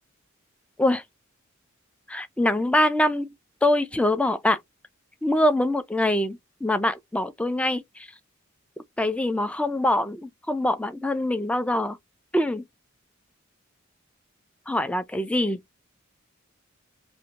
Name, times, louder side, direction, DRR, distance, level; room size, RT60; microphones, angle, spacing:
voice 1, 2.1-3.3 3.6-4.6 5.2-8.1 9.0-12.0 12.3-12.6 14.7-15.6, left 1 dB, 5° left, 0.3 m, -24 dB
2.6 x 2.1 x 2.8 m
head